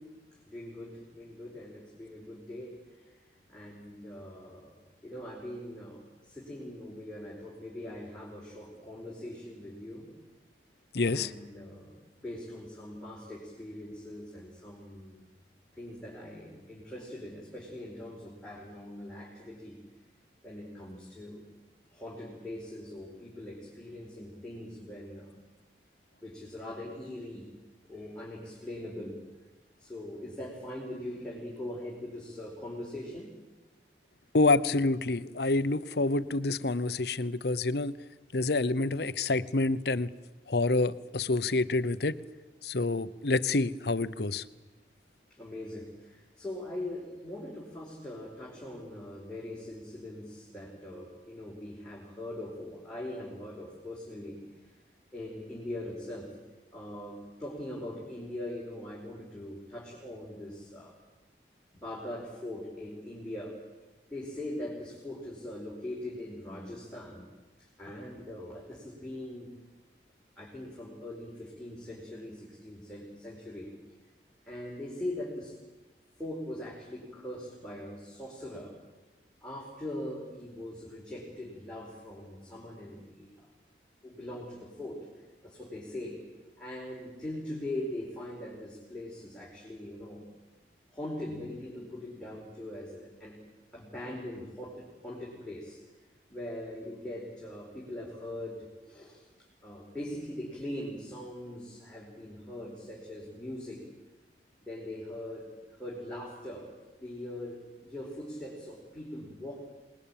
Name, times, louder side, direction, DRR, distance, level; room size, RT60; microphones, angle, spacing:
voice 1, 0.5-3.2 3.5-4.7 5.0-10.1 11.1-12.0 12.2-15.2 15.8-19.8 20.4-21.4 21.9-25.4 26.2-27.5 27.9-29.2 29.8-33.3 45.3-54.4 55.1-56.4 56.7-60.9 61.7-63.6 64.1-67.3 67.6-69.5 70.4-73.7 74.4-75.6 76.2-78.7 79.4-83.5 84.0-85.1 85.4-86.2 86.6-90.2 90.9-93.4 93.7-95.8 96.3-99.3 99.6-103.8 104.6-106.7 107.0-109.6, left 1 dB, 5° left, -5 dB, 4.9 m, -41 dB
voice 2, 10.9-11.3 34.3-38.0 38.3-40.1 40.5-42.2 42.6-44.4, left 3 dB, 60° left, 14 dB, 0.8 m, -27 dB
27.0 x 20.5 x 8.9 m, 1.2 s
head